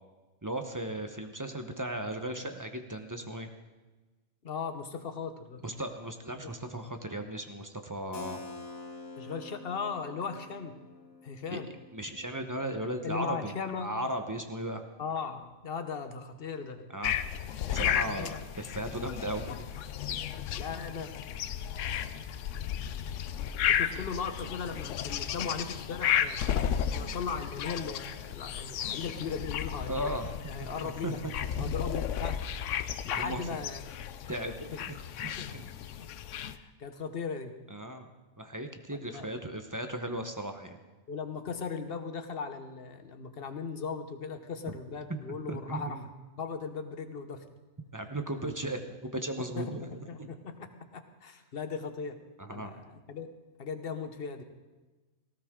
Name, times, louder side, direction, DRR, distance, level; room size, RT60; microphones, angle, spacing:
voice 1, 0.4-3.5 5.6-8.4 11.5-11.6 11.9-13.5 13.8-14.8 16.9-17.2 17.7-19.7 20.1-20.2 29.9-30.3 30.6-31.2 31.5-31.7 33.2-33.4 34.3-35.7 37.7-38.1 38.4-40.8 44.7-44.8 45.1-46.0 47.9-50.3 52.4-52.7, right 1 dB, 15° right, 6 dB, 0.8 m, -36 dB
voice 2, 4.4-5.6 6.4-6.5 9.2-10.8 11.2-11.7 13.0-14.0 15.0-16.9 17.9-18.5 20.6-21.1 23.7-26.6 26.9-30.2 30.5-31.2 31.6-32.4 33.0-33.9 35.4-35.5 36.0-36.1 36.5-37.5 38.9-39.3 41.1-46.0 46.4-47.4 49.4-52.2 52.5-53.3 53.6-54.4, left 5 dB, 45° left, 8 dB, 1.1 m, -38 dB
Keyboard (musical), 8.1-13.7, left 3 dB, 85° left, 1.7 m, -48 dB
sound 1, 17.0-36.6, left 9 dB, 70° left, 0.9 m, -34 dB
18.0 x 15.5 x 3.7 m, 1.2 s
omnidirectional pair, 1.4 m